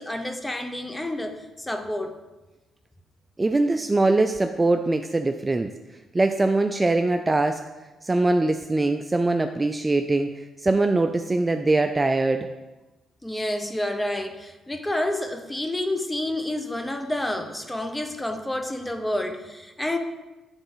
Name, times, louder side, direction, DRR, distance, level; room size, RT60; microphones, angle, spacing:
voice 1, 0.0-2.2 13.2-20.0, left 1 dB, 10° left, 6 dB, 0.7 m, -29 dB
voice 2, 3.4-5.7 6.1-7.6 8.0-12.5, right 2 dB, 20° right, 7 dB, 0.3 m, -22 dB
8.9 x 4.0 x 3.9 m, 1.1 s
cardioid pair, 90°, 0 cm